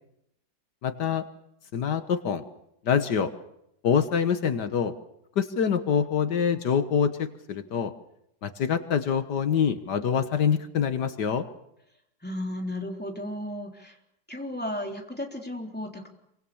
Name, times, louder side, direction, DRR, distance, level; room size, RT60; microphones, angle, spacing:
voice 1, 0.8-1.2 1.7-2.4 2.9-3.3 3.8-4.9 5.4-7.9 8.4-11.5, left 7 dB, 75° left, 9 dB, 1.9 m, -25 dB
voice 2, 12.2-14.0 14.3-16.1, left 1 dB, 5° left, 2 dB, 3.8 m, -34 dB
27.5 x 25.0 x 7.1 m, 0.79 s
omnidirectional pair, 1.8 m